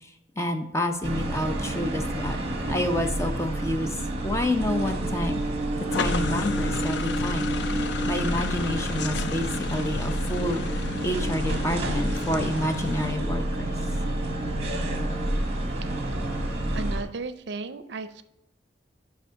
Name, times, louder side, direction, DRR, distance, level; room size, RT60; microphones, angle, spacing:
voice 1, 0.4-2.4 2.7-5.4 5.9-10.6 11.0-13.7, left 1 dB, 15° left, 5 dB, 0.6 m, -29 dB
sound 1, 1.0-17.0, right 1 dB, 35° right, 1.1 m, -29 dB
sound 2, 5.9-13.1, left 6 dB, 70° left, 0.4 m, -34 dB
voice 2, 16.7-18.2, right 3 dB, 70° right, 12 dB, 0.5 m, -34 dB
9.4 x 3.6 x 4.6 m, 0.88 s
head